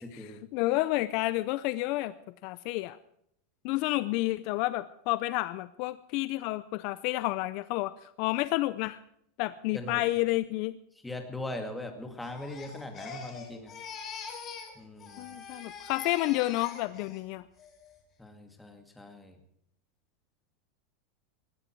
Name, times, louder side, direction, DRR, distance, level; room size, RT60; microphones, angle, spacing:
voice 1, 0.1-2.1 2.4-3.0 3.6-9.0 9.4-10.7 15.2-17.4, left 18 dB, 50° left, 15 dB, 0.5 m, -30 dB
voice 2, 11.0-13.7 14.8-15.4 18.2-19.4, left 2 dB, 5° left, 5 dB, 2.2 m, -40 dB
Crying sobbing, 12.2-14.7 15.0-17.2 17.6-18.0, left 5 dB, 25° left, 3.3 m, -44 dB
19.5 x 14.0 x 4.7 m, 0.72 s
supercardioid pair, 160°, 0 cm